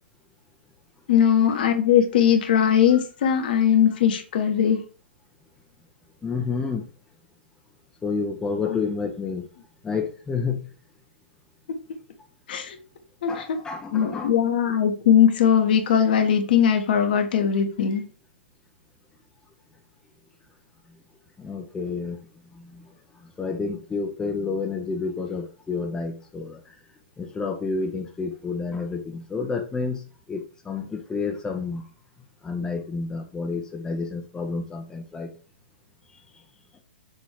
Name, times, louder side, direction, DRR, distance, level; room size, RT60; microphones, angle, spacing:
voice 1, 1.1-4.8 8.7-8.8 11.7-11.8 12.5-12.8 13.2-13.6 13.9-18.0, left 8 dB, 55° left, 5 dB, 1.4 m, -20 dB
voice 2, 6.2-6.8 8.0-9.5 9.8-10.6 13.3-14.3 21.4-22.2 22.5-22.9 23.4-26.7 27.2-30.0 30.3-31.9 32.4-35.3, left 4 dB, 10° left, 3 dB, 0.8 m, -29 dB
7.0 x 3.1 x 4.7 m, 0.38 s
figure-of-eight pair, 115°, 6 cm